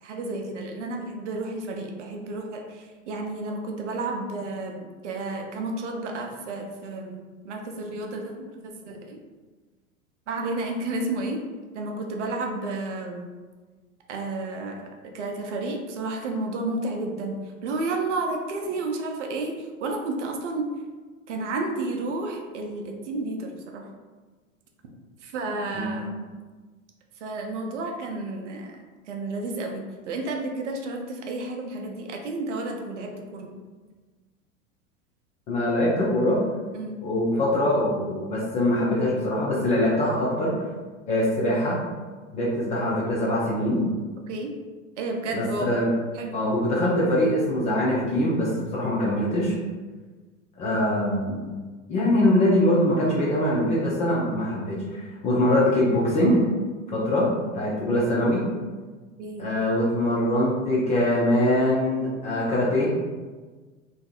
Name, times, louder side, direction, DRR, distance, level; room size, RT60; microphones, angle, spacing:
voice 1, 0.0-9.2 10.3-11.4 11.7-13.3 14.1-14.9 15.1-17.4 17.6-20.7 21.3-23.9 25.2-26.3 27.2-28.8 29.1-33.5 36.7-37.0 44.3-44.5 45.0-45.8 46.1-46.4 51.0-51.4 59.2-59.5, right 2 dB, 60° right, 2 dB, 0.6 m, -31 dB
voice 2, 35.5-36.4 37.0-40.5 41.1-41.8 42.3-43.8 45.3-45.9 46.3-49.5 50.6-51.4 51.9-56.4 56.9-57.3 57.5-58.5 59.4-63.0, left 1 dB, 20° left, -6 dB, 0.3 m, -23 dB
2.6 x 2.4 x 2.3 m, 1.4 s
figure-of-eight pair, 85°, 40 cm